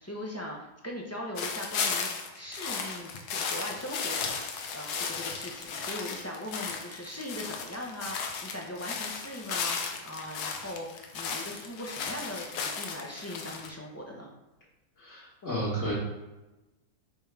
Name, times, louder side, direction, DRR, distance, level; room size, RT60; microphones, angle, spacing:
voice 1, 0.0-14.3, left 1 dB, 15° left, -2 dB, 0.6 m, -40 dB
sound 1, 1.4-13.7, left 5 dB, 85° left, 1.3 m, -35 dB
voice 2, 15.0-15.9, right 1 dB, 55° left, -8 dB, 1.9 m, -32 dB
5.3 x 5.1 x 3.4 m, 1.0 s
omnidirectional pair, 1.7 m